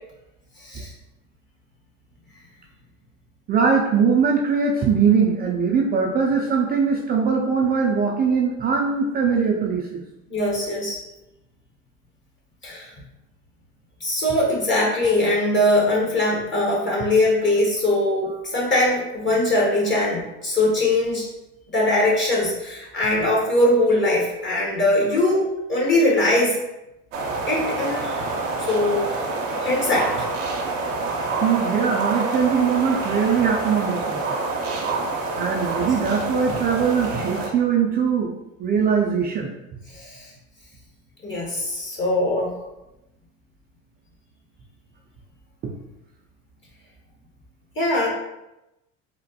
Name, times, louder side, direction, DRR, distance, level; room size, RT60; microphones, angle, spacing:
voice 1, 0.6-0.9 10.3-11.0 12.6-12.9 14.0-21.3 21.7-26.6 27.5-29.3 29.6-30.3 35.7-35.9 39.9-40.3 41.2-42.5 47.8-48.1, left 1 dB, 30° left, -4 dB, 1.0 m, -21 dB
voice 2, 3.5-10.0 31.4-34.4 35.3-38.3 38.6-39.5, right 6 dB, 25° right, 0 dB, 0.4 m, -21 dB
sound 1, 27.1-37.5, right 3 dB, 85° right, 0.6 m, -27 dB
3.3 x 2.1 x 2.7 m, 0.94 s
hypercardioid pair, 80°, 38 cm